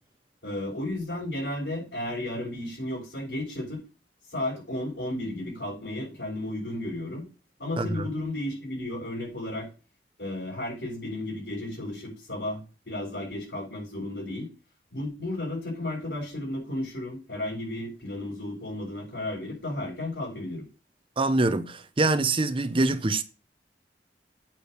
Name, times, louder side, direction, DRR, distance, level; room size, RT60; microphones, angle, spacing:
voice 1, 0.4-3.8 4.3-7.3 7.6-9.7 10.2-12.6 12.8-14.5 14.9-20.7, left 1 dB, 75° left, 6.4 m, -33 dB
voice 2, 7.8-8.1 21.2-23.2, right 2 dB, 30° right, 0.7 m, -25 dB
8.6 x 4.9 x 6.6 m
head